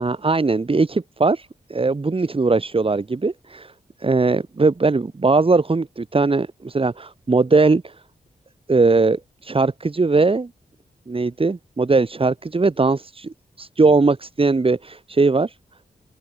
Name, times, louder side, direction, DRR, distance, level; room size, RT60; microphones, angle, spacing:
voice 1, 0.0-3.7 4.0-7.9 8.7-10.5 11.1-15.5, right 3 dB, 35° right, 6.5 m, -20 dB
open air
wide cardioid pair, 90°, 16 cm